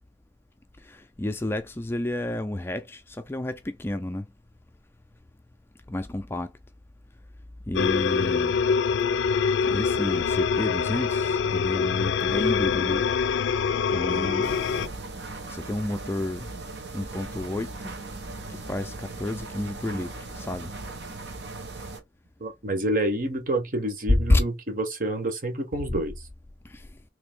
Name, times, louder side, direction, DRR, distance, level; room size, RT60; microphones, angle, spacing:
voice 1, 0.8-4.3 5.9-6.5 7.7-8.6 9.7-13.0 13.9-14.4 15.5-16.5 16.9-17.9 18.5-20.7 24.3-24.4 26.6-26.9, left 1 dB, 15° left, 0.3 m, -30 dB
sound 1, 7.7-14.9, left 6 dB, 90° left, 0.4 m, -24 dB
voice 2, 14.1-15.0 22.4-26.1, right 1 dB, 50° right, 0.9 m, -29 dB
sound 2, 14.4-22.0, right 3 dB, 75° right, 0.9 m, -38 dB
3.3 x 2.9 x 3.4 m
head